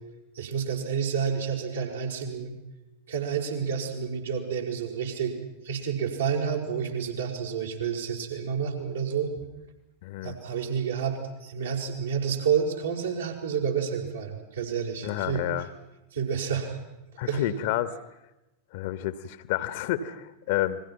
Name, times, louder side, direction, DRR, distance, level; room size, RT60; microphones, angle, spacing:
voice 1, 0.3-2.6 3.1-5.3 5.6-9.4 10.2-15.4 16.1-16.8 17.3-17.4, right 7 dB, 70° right, 0 dB, 5.2 m, -29 dB
voice 2, 10.0-10.3 15.0-15.7 17.2-17.9 18.7-20.8, left 12 dB, 50° left, 14 dB, 1.4 m, -29 dB
30.0 x 21.5 x 5.9 m, 0.98 s
figure-of-eight pair, 90°, 0 cm